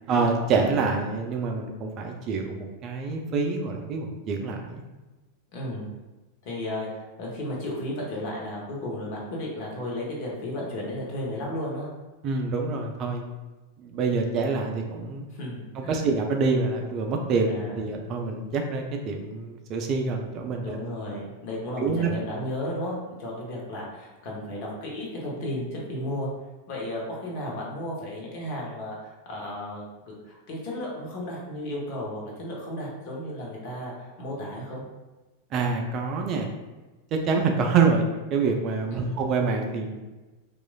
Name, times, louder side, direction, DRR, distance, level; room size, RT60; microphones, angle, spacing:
voice 1, 0.0-4.8 12.2-13.2 13.8-15.3 15.8-20.8 21.8-22.1 35.5-36.5 37.1-40.0, right 4 dB, 35° right, 2 dB, 0.3 m, -26 dB
voice 2, 5.5-5.9 6.4-11.9 15.3-16.1 17.5-17.8 20.6-26.3 26.7-29.8 30.2-34.8 38.9-39.2, left 1 dB, 45° left, -3 dB, 0.8 m, -34 dB
3.0 x 2.3 x 2.2 m, 1.2 s
figure-of-eight pair, 90°, 0 cm